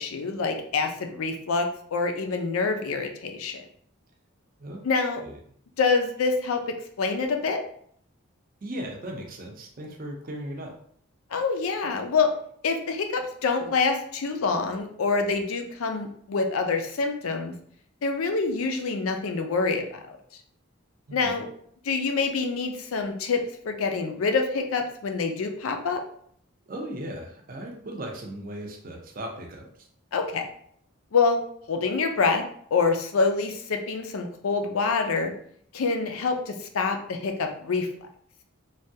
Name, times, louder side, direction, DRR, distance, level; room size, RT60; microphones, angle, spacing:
voice 1, 0.0-3.7 4.8-5.2 5.8-7.6 11.3-12.3 12.6-17.5 18.0-20.2 21.1-21.5 21.8-26.0 30.1-30.4 31.1-31.4 31.7-32.4 32.7-35.3 35.7-38.1, left 4 dB, 85° left, 5 dB, 0.5 m, -26 dB
voice 2, 8.6-10.7 21.1-21.4 26.7-29.9, right 1 dB, 40° right, 1 dB, 0.5 m, -37 dB
3.3 x 2.3 x 2.7 m, 0.63 s
head